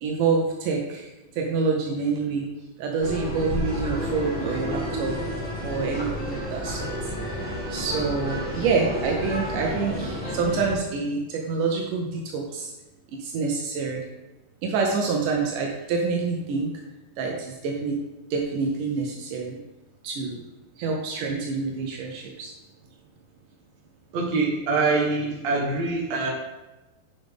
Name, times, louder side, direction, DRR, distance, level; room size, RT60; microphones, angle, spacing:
voice 1, 0.0-1.1 1.4-2.5 2.8-5.2 5.6-6.9 7.2-12.7 13.2-14.0 14.6-16.7 17.2-18.0 18.3-19.6 20.0-20.4 20.8-22.5, right 4 dB, 85° right, 0 dB, 1.8 m, -27 dB
sound 1, 3.0-10.7, equal, 5° left, 1.3 m, -31 dB
voice 2, 24.1-26.3, right 3 dB, 60° right, -2 dB, 1.9 m, -24 dB
9.6 x 5.3 x 3.6 m, 1.0 s
omnidirectional pair, 4.8 m